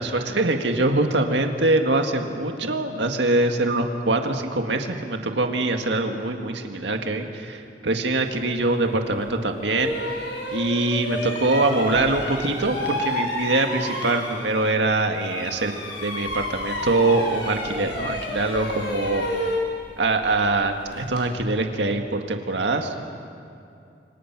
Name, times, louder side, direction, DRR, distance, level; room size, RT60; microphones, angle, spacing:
voice 1, 0.0-10.1 10.5-15.7 16.0-19.6 20.0-23.1, right 2 dB, 85° right, 4 dB, 1.9 m, -23 dB
sound 1, 9.0-9.2 9.7-14.8 15.1-21.3, left 1 dB, 90° left, 6.1 m, -30 dB
29.5 x 25.0 x 6.1 m, 2.5 s
head